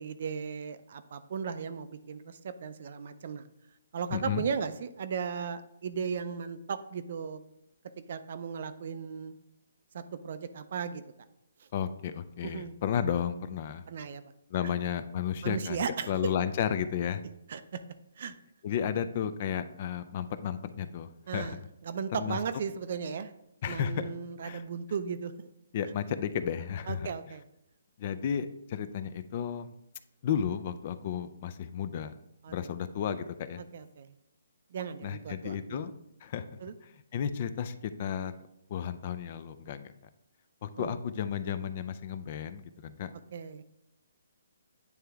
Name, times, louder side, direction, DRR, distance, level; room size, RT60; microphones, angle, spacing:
voice 1, 0.0-3.4 3.9-7.4 8.1-9.3 9.9-11.0 12.4-12.7 13.9-14.2 14.6-14.7 15.4-16.1 17.5-17.6 18.2-18.3 21.3-21.6 21.8-23.3 23.6-25.5 26.9-27.4 32.4-32.6 33.7-34.1 34.7-35.9 36.6-36.7 40.8-40.9 43.3-43.6, right 6 dB, 50° right, 11 dB, 0.4 m, -36 dB
voice 2, 4.1-4.4 11.7-13.8 14.5-17.2 18.6-21.6 22.2-22.4 23.6-24.1 24.4-24.6 25.7-27.1 28.0-29.7 30.2-32.1 32.5-33.6 35.0-35.9 36.2-36.4 37.1-37.7 38.0-38.3 38.7-39.9 40.6-43.1, left 8 dB, 35° left, 12 dB, 0.3 m, -33 dB
9.2 x 3.3 x 3.4 m, 0.83 s
hypercardioid pair, 165°, 0 cm